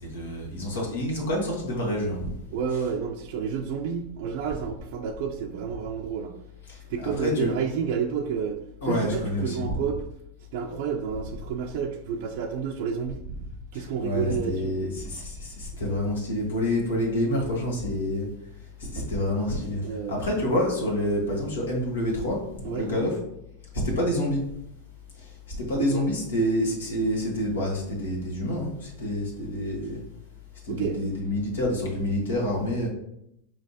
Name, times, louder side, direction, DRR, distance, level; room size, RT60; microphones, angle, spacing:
voice 1, 0.0-2.3 6.7-7.5 8.8-9.8 13.7-18.3 18.8-23.2 23.8-24.4 25.2-30.0 30.6-32.9, left 1 dB, 90° left, -1 dB, 1.4 m, -28 dB
voice 2, 2.5-6.3 6.9-10.0 10.5-13.2 13.7-14.7 17.0-17.1 19.8-20.2 22.6-22.9 25.9-26.0 30.7-31.0, right 7 dB, 65° right, 3 dB, 0.4 m, -30 dB
4.5 x 3.3 x 2.8 m, 0.79 s
hypercardioid pair, 105°, 0 cm